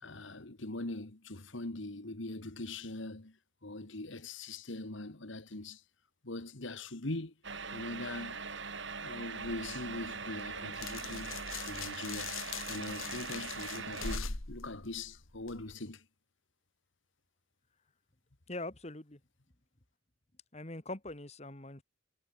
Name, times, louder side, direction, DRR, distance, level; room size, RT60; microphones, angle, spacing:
voice 1, 0.0-3.4 3.6-5.8 6.2-7.3 7.7-8.4 9.0-12.4 12.7-16.0, left 2 dB, 70° left, 1.9 m, -42 dB
sound 1, 7.4-14.2, right 5 dB, 65° right, 6.3 m, -41 dB
sound 2, 9.4-15.7, left 5 dB, 85° left, 2.4 m, -42 dB
voice 2, 18.5-19.2 20.5-21.8, left 2 dB, 30° left, 1.8 m, -42 dB
head